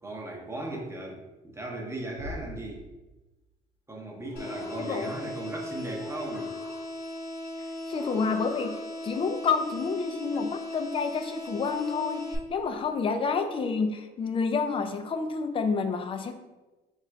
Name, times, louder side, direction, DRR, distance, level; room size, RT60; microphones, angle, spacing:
voice 1, 0.0-2.9 3.9-6.5, right 2 dB, 15° right, 0 dB, 0.8 m, -37 dB
sound 1, 2.2-3.6, left 1 dB, 75° right, 0.7 m, -43 dB
sound 2, 4.2-5.6 5.9-7.2 7.9-9.2, left 1 dB, 15° left, 0.9 m, -46 dB
sound 3, 4.4-12.4, left 1 dB, 70° left, 0.8 m, -37 dB
voice 2, 4.8-5.1 7.9-8.7 9.0-16.3, left 5 dB, 30° left, 8 dB, 0.4 m, -29 dB
3.6 x 2.4 x 4.4 m, 1.1 s
cardioid pair, 110°, 17 cm